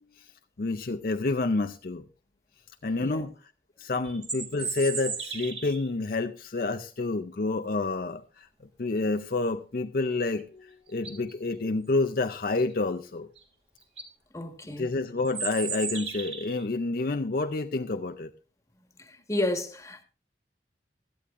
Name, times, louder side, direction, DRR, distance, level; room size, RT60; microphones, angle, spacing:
voice 1, 0.6-2.0 2.8-3.3 3.8-8.5 8.8-13.3 14.8-18.3, left 3 dB, 50° left, 0.5 m, -29 dB
sound 1, 4.0-5.9 10.4-10.5 10.9-11.3 13.4-13.5 13.8-14.1 15.2-16.6, right 5 dB, 30° right, 1.9 m, -35 dB
voice 2, 14.3-14.9 19.0-20.0, left 1 dB, 15° left, 1.5 m, -32 dB
17.0 x 13.0 x 2.5 m
head